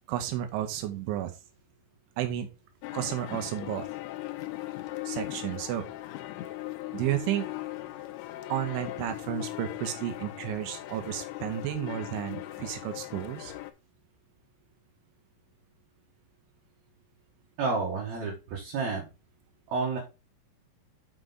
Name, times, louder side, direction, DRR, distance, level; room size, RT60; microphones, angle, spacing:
voice 1, 0.1-1.3 2.2-2.5 2.9-3.9 5.1-5.9 6.9-7.5 8.5-13.5, right 12 dB, 80° right, 7 dB, 3.2 m, -32 dB
sound 1, 2.8-13.7, left 16 dB, 85° left, 2.7 m, -39 dB
voice 2, 17.6-19.1 19.7-20.0, right 4 dB, 60° right, -1 dB, 3.1 m, -30 dB
6.8 x 6.2 x 3.8 m, 0.29 s
omnidirectional pair, 5.8 m